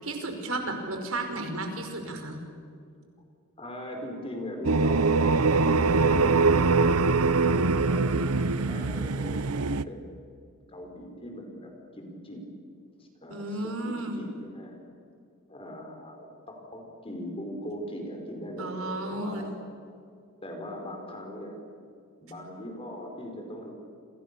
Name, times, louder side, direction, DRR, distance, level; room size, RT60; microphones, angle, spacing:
voice 1, 0.0-2.4 13.3-14.2 18.6-19.5, right 2 dB, 70° right, 5 dB, 5.3 m, -33 dB
voice 2, 3.6-5.1 5.7-10.2 10.7-12.4 13.0-14.8 15.5-19.5 20.4-21.6 22.2-23.7, equal, 25° left, 3 dB, 5.1 m, -40 dB
sound 1, 4.6-9.8, right 3 dB, 90° right, 0.9 m, -23 dB
30.0 x 27.5 x 7.0 m, 2.4 s
head